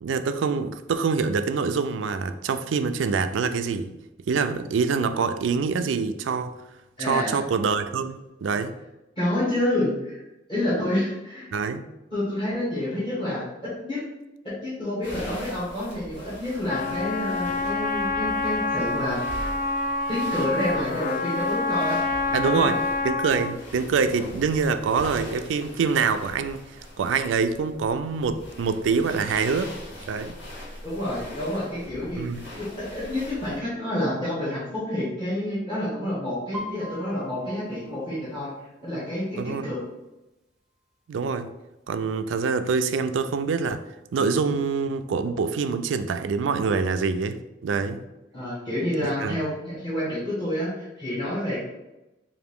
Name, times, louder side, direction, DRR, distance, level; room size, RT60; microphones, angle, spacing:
voice 1, 0.0-3.9 4.3-6.5 7.0-8.7 11.5-11.8 22.3-26.6 27.0-29.8 30.1-30.4 32.2-32.4 39.4-39.7 41.1-41.5 41.9-43.8 44.1-48.0 49.0-49.4, right 5 dB, 85° right, 10 dB, 0.4 m, -25 dB
voice 2, 7.0-7.4 9.2-10.2 10.5-11.5 12.1-14.0 14.4-19.2 20.1-22.7 30.8-32.3 32.8-38.5 38.8-39.8 48.3-51.6, left 1 dB, 30° left, -10 dB, 1.4 m, -28 dB
sound 1, 15.0-33.6, left 1 dB, 70° left, 1.4 m, -42 dB
Trumpet, 16.7-23.6, left 3 dB, 45° left, 0.3 m, -27 dB
Piano, 36.5-40.2 40.5-40.9 41.3-41.9 42.5-42.6 42.8-43.9 44.2-44.3, left 1 dB, 5° right, 0.7 m, -42 dB
4.9 x 2.6 x 3.5 m, 0.97 s
head